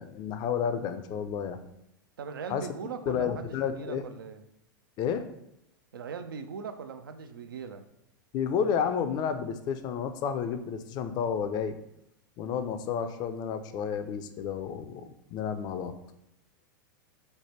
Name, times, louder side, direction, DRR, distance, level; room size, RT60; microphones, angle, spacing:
voice 1, 0.0-1.6 2.5-2.7 3.1-4.0 5.0-5.3 8.3-11.8 12.4-16.0, left 7 dB, 40° left, 9 dB, 0.4 m, -31 dB
voice 2, 2.2-4.4 5.9-7.8, right 6 dB, 85° right, 8 dB, 0.4 m, -40 dB
3.2 x 2.1 x 4.2 m, 0.82 s
hypercardioid pair, 100°, 11 cm